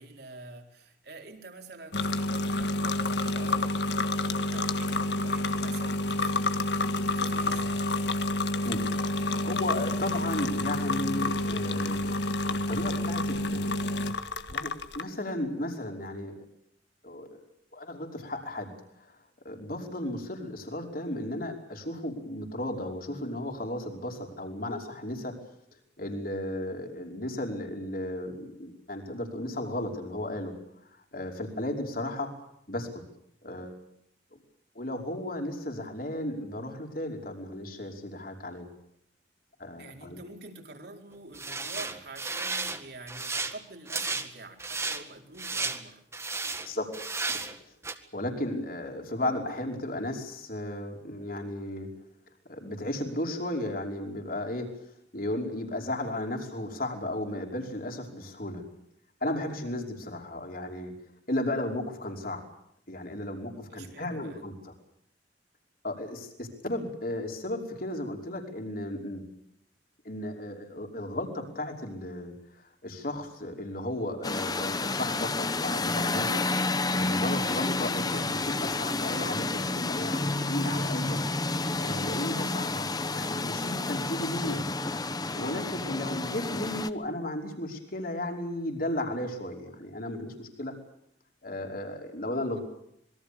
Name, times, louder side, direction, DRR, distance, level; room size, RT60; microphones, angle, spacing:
voice 1, 0.0-6.5 6.7-7.9 39.8-46.0 63.7-64.5, right 3 dB, 60° right, 3 dB, 4.3 m, -47 dB
sound 1, 1.9-15.0, left 2 dB, 70° left, 1.6 m, -29 dB
voice 2, 8.6-12.2 12.5-13.7 14.5-16.3 17.0-17.4 17.7-18.7 19.0-19.2 19.5-25.3 26.0-30.5 31.1-32.3 32.7-33.0 33.4-33.7 34.8-38.7 39.6-40.2 46.7-46.9 47.3-47.6 48.1-51.9 52.5-54.7 55.1-58.6 59.2-60.9 61.3-62.4 62.9-64.7 65.8-69.2 70.1-81.2 81.5-84.6 85.3-90.7 91.4-92.6, left 1 dB, 55° left, 2 dB, 5.3 m, -34 dB
sound 2, 41.3-42.8 43.1-43.5 43.9-44.3 44.6-45.0 45.4-45.8 46.1-46.7 46.9-47.6 47.8-47.9, right 3 dB, 15° right, 1.8 m, -33 dB
sound 3, 74.2-86.9, left 3 dB, 20° left, 1.0 m, -30 dB
26.5 x 22.5 x 6.9 m, 0.72 s
head